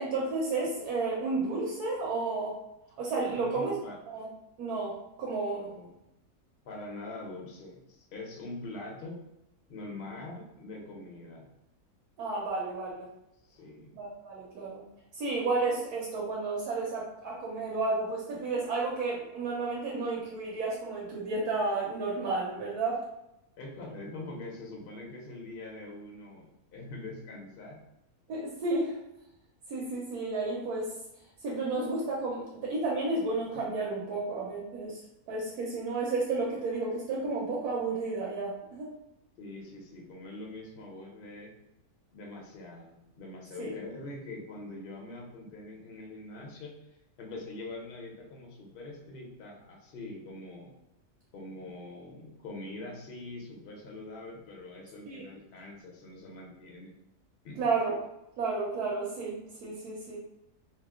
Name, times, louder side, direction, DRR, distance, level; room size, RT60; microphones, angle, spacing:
voice 1, 0.0-2.6 3.0-3.7 4.1-4.3 4.6-5.7 12.2-13.1 13.9-14.8 15.1-23.0 28.3-29.0 29.7-30.9 31.4-35.0 35.3-38.9 43.6-43.7 55.1-55.2 57.6-58.0 58.4-60.2, right 3 dB, 80° right, -4 dB, 1.2 m, -32 dB
voice 2, 3.2-4.0 5.5-5.9 6.6-9.2 9.7-11.5 13.5-13.9 23.6-27.8 39.4-41.5 42.1-46.8 47.2-50.7 51.3-56.9 57.4-57.6, left 2 dB, 50° left, -1 dB, 0.7 m, -43 dB
2.8 x 2.0 x 3.5 m, 0.86 s
omnidirectional pair, 1.6 m